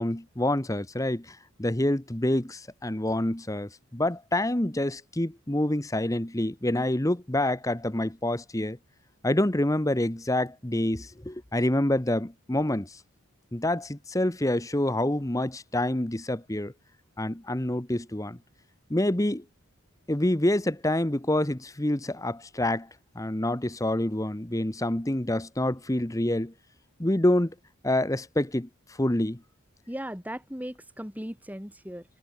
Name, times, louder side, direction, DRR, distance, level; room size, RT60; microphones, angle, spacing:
voice 1, 0.0-8.8 9.2-12.9 13.5-16.7 17.2-18.4 18.9-19.4 20.1-22.9 23.1-26.5 27.0-27.5 27.8-28.7 29.0-29.4, left 1 dB, 15° left, 1.1 m, -27 dB
voice 2, 29.9-32.0, equal, 5° right, 4.2 m, -37 dB
head